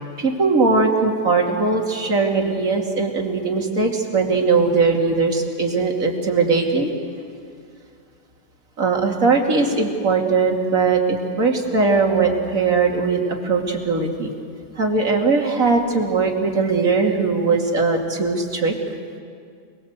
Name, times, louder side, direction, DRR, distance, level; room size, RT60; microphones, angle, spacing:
voice 1, 0.2-6.9 8.8-14.3 14.8-18.7, right 4 dB, 50° right, 1 dB, 2.9 m, -20 dB
29.0 x 21.0 x 8.1 m, 2.2 s
omnidirectional pair, 1.8 m